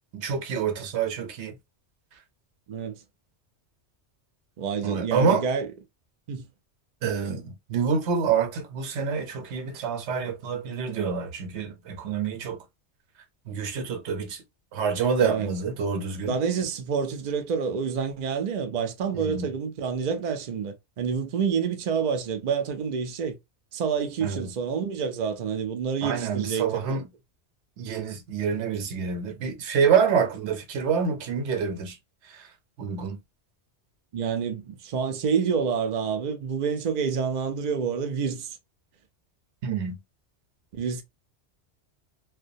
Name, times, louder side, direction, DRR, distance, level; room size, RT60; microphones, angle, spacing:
voice 1, 0.1-1.6 4.8-5.4 7.0-12.6 13.5-14.4 14.7-16.4 19.1-19.5 24.2-24.5 26.0-27.1 27.8-32.0 32.3-32.5 32.8-33.2 39.6-40.0, right 6 dB, 80° right, 0.9 m, -27 dB
voice 2, 2.7-3.0 4.6-5.7 6.3-6.5 15.2-15.5 16.2-23.4 23.7-27.0 34.1-38.6 40.7-41.0, right 6 dB, 55° right, 0.5 m, -28 dB
2.3 x 2.1 x 2.5 m
omnidirectional pair, 1.2 m